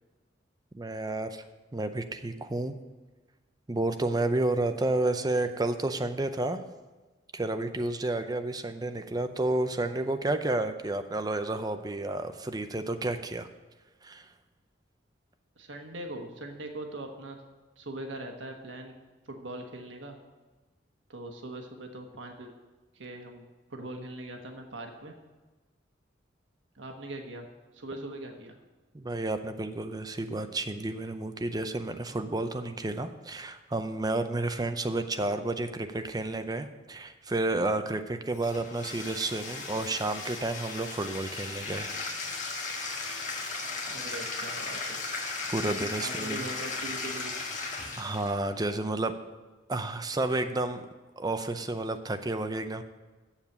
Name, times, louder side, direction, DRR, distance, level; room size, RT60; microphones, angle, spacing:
voice 1, 0.7-1.4 1.7-2.8 3.7-6.6 7.3-13.5 14.0-14.3 28.9-41.9 42.8-43.2 45.2-46.5 48.0-49.1 49.7-50.9 51.2-52.8, right 2 dB, 20° right, 8 dB, 0.6 m, -31 dB
voice 2, 15.6-17.4 17.8-18.9 19.2-20.2 21.1-22.5 22.9-23.4 23.7-25.1 26.7-27.4 27.7-28.5 43.9-45.0 46.0-47.3, right 1 dB, 90° right, 3 dB, 1.3 m, -41 dB
Bathtub (filling or washing), 38.3-48.4, left 3 dB, 40° left, 1.6 m, -36 dB
7.3 x 7.2 x 8.0 m, 1.2 s
head